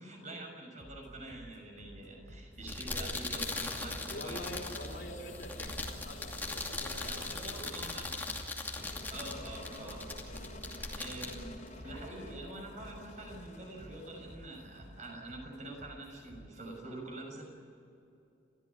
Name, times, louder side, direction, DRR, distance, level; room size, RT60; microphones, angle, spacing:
voice 1, 0.0-4.7 7.0-8.3 9.1-10.1 10.7-17.5, right 2 dB, 40° right, 2 dB, 6.4 m, -46 dB
sound 1, 0.8-16.8, equal, 75° right, 5.2 m, -54 dB
sound 2, 2.5-12.3, left 2 dB, 10° left, 2.6 m, -40 dB
sound 3, 3.4-15.2, left 2 dB, 40° left, 3.6 m, -51 dB
voice 2, 4.0-7.7, equal, 60° left, -1 dB, 3.7 m, -46 dB
30.0 x 15.0 x 9.7 m, 2.7 s
head